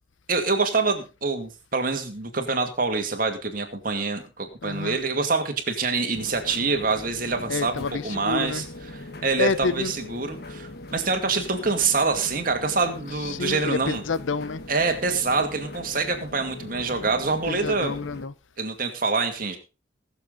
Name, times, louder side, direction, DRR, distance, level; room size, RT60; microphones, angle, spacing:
voice 1, 0.3-8.6 9.2-14.0 14.7-18.0 18.6-19.6, right 4 dB, 45° right, 2.2 m, -26 dB
voice 2, 4.6-5.0 7.5-8.7 9.4-10.0 13.2-14.6 17.4-18.3, left 4 dB, 85° left, 0.7 m, -28 dB
sound 1, 6.1-18.3, left 2 dB, 55° left, 1.6 m, -40 dB
21.5 x 7.2 x 3.9 m
head